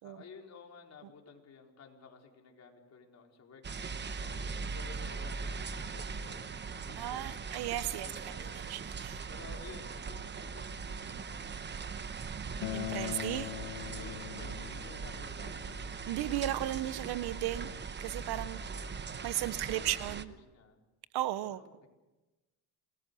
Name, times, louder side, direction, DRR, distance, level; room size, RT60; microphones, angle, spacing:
voice 1, 0.0-3.6 4.2-7.7 8.0-8.5 9.3-11.7 13.0-13.2 13.9-15.8 18.4-19.0 19.3-20.8 21.5-21.9, left 5 dB, 35° left, 1 dB, 4.4 m, -54 dB
sound 1, 3.6-20.2, right 5 dB, 25° right, 1.0 m, -40 dB
voice 2, 7.0-9.2 12.7-13.5 16.1-17.7 18.0-18.6 19.2-20.3 21.1-21.6, right 14 dB, 55° right, 16 dB, 0.9 m, -35 dB
Acoustic guitar, 12.6-17.8, left 21 dB, 80° left, 1.5 m, -43 dB
28.0 x 20.0 x 6.9 m, 1.1 s
cardioid pair, 130°, 46 cm